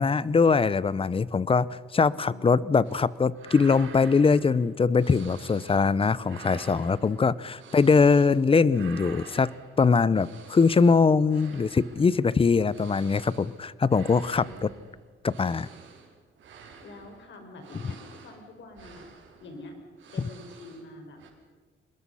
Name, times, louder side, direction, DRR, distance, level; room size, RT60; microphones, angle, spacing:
voice 1, 0.0-9.5 9.8-14.4 15.2-15.7, left 5 dB, 30° left, 19 dB, 0.7 m, -22 dB
voice 2, 2.1-2.8 14.4-14.7 16.5-19.1 19.4-19.7 20.1-21.2, left 2 dB, 70° left, 5 dB, 5.1 m, -46 dB
sound 1, 2.8-3.1 3.3-5.9 6.2-8.4 8.7-20.9 21.2-21.3, right 6 dB, 70° right, 4.2 m, -48 dB
25.0 x 21.0 x 5.7 m, 1.4 s
cardioid pair, 90°, 20 cm